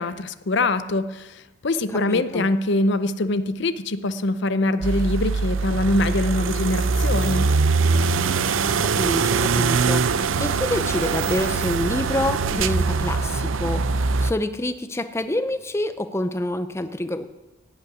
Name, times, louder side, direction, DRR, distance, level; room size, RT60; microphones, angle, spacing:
voice 1, 0.0-7.5, left 2 dB, 55° left, 12 dB, 0.6 m, -23 dB
voice 2, 1.9-2.5 8.8-10.0 10.4-13.8 14.2-17.4, left 1 dB, 15° left, 10 dB, 0.5 m, -27 dB
sound 1, 4.8-14.3, right 4 dB, 70° right, 0.6 m, -22 dB
16.5 x 5.6 x 9.4 m, 1.1 s
head